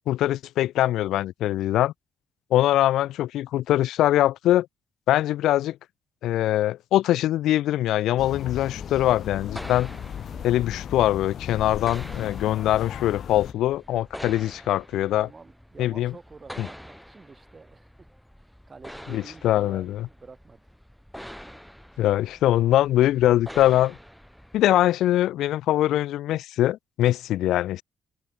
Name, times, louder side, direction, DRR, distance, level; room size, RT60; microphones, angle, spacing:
voice 1, 0.1-1.9 2.5-4.7 5.1-5.8 6.2-9.9 10.4-15.3 15.8-16.1 16.6-16.7 19.1-20.1 22.0-24.0 24.5-27.8, left 14 dB, 85° left, 0.5 m, -22 dB
sound 1, 8.2-13.5, left 8 dB, 60° left, 2.3 m, -36 dB
sound 2, 8.6-24.9, equal, ahead, 3.2 m, -45 dB
voice 2, 10.3-10.7 15.1-18.2 18.7-20.6, right 4 dB, 30° right, 3.6 m, -48 dB
cardioid pair, 90°, 0 cm